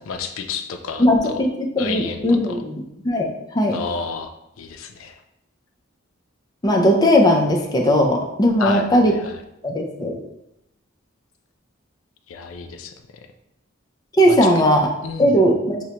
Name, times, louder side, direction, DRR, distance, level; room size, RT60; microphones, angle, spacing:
voice 1, 0.1-1.5 1.8-2.6 3.7-5.2 8.6-9.4 12.3-12.9 14.2-14.6 15.0-15.4, left 5 dB, 80° left, 6 dB, 0.4 m, -30 dB
voice 2, 1.0-3.3 3.5-3.8 6.6-9.1 9.6-10.2 14.2-14.9 15.2-15.8, equal, 20° left, 1 dB, 0.4 m, -18 dB
6.1 x 2.1 x 2.8 m, 0.86 s
head